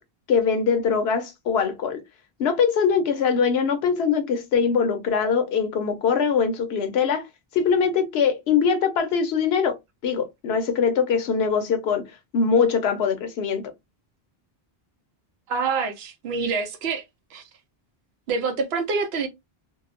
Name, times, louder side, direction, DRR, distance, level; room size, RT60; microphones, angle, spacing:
voice 1, 0.3-2.0 2.4-7.3 7.5-9.8 10.0-12.1 12.3-13.7, left 6 dB, 90° left, 0.9 m, -22 dB
voice 2, 15.5-17.0 17.3-17.4 18.3-19.3, right 4 dB, 85° right, 0.9 m, -26 dB
2.8 x 2.0 x 2.4 m
omnidirectional pair, 1.0 m